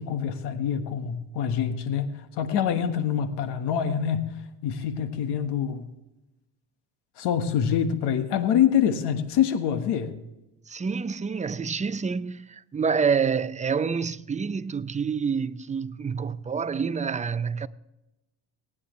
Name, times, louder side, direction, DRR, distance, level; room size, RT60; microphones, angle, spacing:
voice 1, 0.0-4.4 4.6-5.9 7.2-10.1, left 8 dB, 80° left, 1.4 m, -25 dB
voice 2, 10.7-17.7, right 6 dB, 20° right, 0.5 m, -27 dB
19.0 x 9.5 x 3.1 m
cardioid pair, 85°, 40 cm